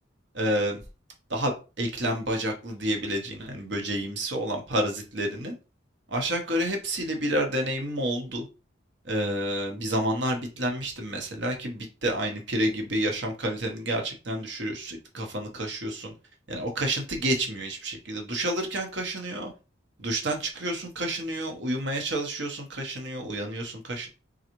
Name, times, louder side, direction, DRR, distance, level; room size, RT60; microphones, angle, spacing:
voice 1, 0.3-0.8 1.3-5.5 6.1-8.4 9.0-16.1 16.5-19.5 20.0-24.1, right 1 dB, 60° right, 3 dB, 1.1 m, -29 dB
4.0 x 3.9 x 3.0 m, 0.31 s
head